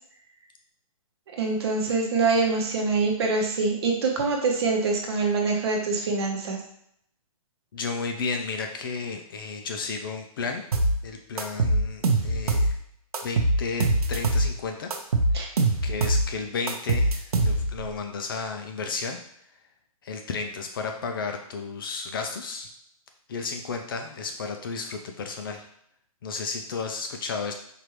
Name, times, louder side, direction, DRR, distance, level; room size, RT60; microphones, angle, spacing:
voice 1, 1.4-6.6 15.3-15.5, right 4 dB, 45° right, 1 dB, 0.9 m, -25 dB
voice 2, 7.7-10.6 11.0-12.8 13.2-14.9 15.8-19.2 20.0-22.7 23.3-25.7 26.2-27.5, left 4 dB, 35° left, 4 dB, 0.4 m, -33 dB
sound 1, 10.7-11.0 11.4-12.7 13.1-14.5 14.9-16.3 16.7-17.8, right 2 dB, 90° right, 0.7 m, -23 dB
4.8 x 2.5 x 3.1 m, 0.70 s
hypercardioid pair, 160°, 19 cm